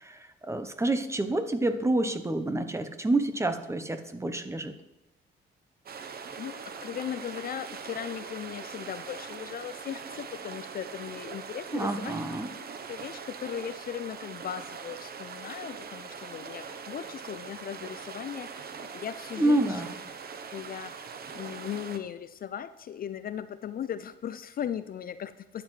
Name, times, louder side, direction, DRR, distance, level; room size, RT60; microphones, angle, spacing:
voice 1, 0.0-4.7 11.7-12.5 19.4-19.9, right 2 dB, 15° right, 9 dB, 0.8 m, -28 dB
sound 1, 5.9-22.0, right 6 dB, 50° right, 0.9 m, -42 dB
voice 2, 6.0-12.1 12.9-19.8 20.5-25.6, left 9 dB, 50° left, 13 dB, 0.4 m, -38 dB
12.0 x 7.7 x 3.2 m, 0.99 s
cardioid pair, 90°, 20 cm